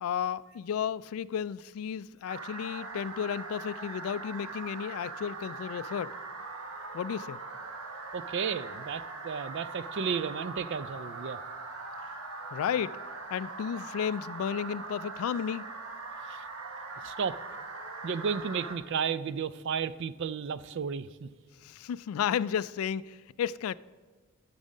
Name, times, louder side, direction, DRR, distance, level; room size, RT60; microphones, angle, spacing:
voice 1, 0.0-6.1 6.9-7.4 12.5-12.9 13.3-15.6 21.6-23.7, left 8 dB, 75° left, 0.3 m, -33 dB
sound 1, 2.3-18.8, right 3 dB, 85° right, 1.3 m, -41 dB
voice 2, 8.1-11.4 16.3-16.4 17.0-17.4 18.0-21.3, right 6 dB, 55° right, 0.4 m, -33 dB
12.5 x 6.3 x 5.3 m
head